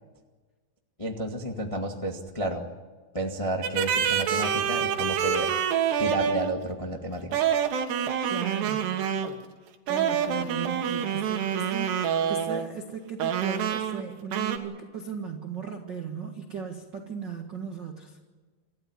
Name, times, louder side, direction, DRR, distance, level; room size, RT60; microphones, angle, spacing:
voice 1, 1.0-2.7 3.1-5.5 6.0-7.4, right 1 dB, 40° left, 1 dB, 0.4 m, -31 dB
sound 1, 3.6-6.6 7.3-9.4 9.9-12.7 13.2-14.0 14.3-14.6, right 8 dB, 85° right, 3.6 m, -27 dB
voice 2, 8.2-8.9 9.9-18.2, right 7 dB, 50° right, 3 dB, 1.4 m, -37 dB
27.5 x 14.0 x 9.9 m, 1.4 s
omnidirectional pair, 4.7 m